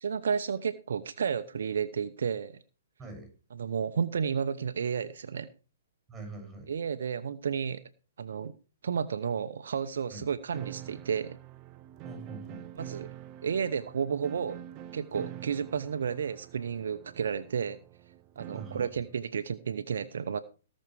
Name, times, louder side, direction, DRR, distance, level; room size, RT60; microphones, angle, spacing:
voice 1, 0.0-2.6 3.5-5.5 6.7-7.8 8.2-8.5 8.8-11.4 12.7-13.1 13.4-14.6 14.9-17.8 18.4-20.4, right 7 dB, 70° right, 9 dB, 0.9 m, -32 dB
voice 2, 3.0-3.3 6.1-6.7 10.1-10.3 12.0-12.7 18.5-18.9, right 3 dB, 10° right, 4 dB, 7.4 m, -43 dB
sound 1, 10.5-18.9, right 11 dB, 35° right, 0.8 m, -46 dB
18.0 x 6.5 x 4.8 m, 0.34 s
hypercardioid pair, 130°, 0 cm